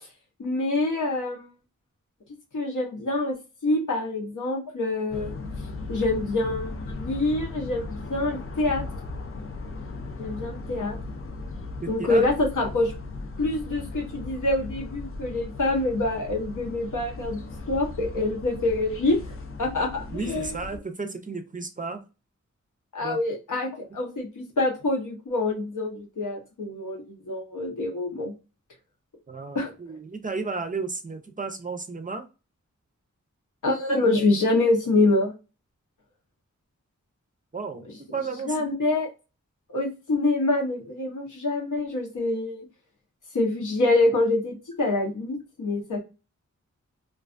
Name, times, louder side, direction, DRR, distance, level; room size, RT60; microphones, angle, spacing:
voice 1, 0.4-1.5 2.5-3.3 3.6-5.3 5.9-8.8 10.2-11.0 11.9-12.9 13.4-19.2 19.6-20.5 22.9-28.3 29.5-29.7 33.6-35.3 38.5-39.1 39.7-42.7 43.3-46.0, left 2 dB, 85° left, 1 dB, 0.8 m, -26 dB
sound 1, 5.1-20.8, left 3 dB, 45° left, 0.5 m, -37 dB
voice 2, 11.8-12.2 20.1-22.0 23.0-23.2 29.3-32.3 37.5-37.9 38.1-38.6, right 4 dB, 25° right, 6 dB, 0.4 m, -33 dB
2.4 x 2.3 x 2.4 m, 0.30 s
wide cardioid pair, 75°, 30 cm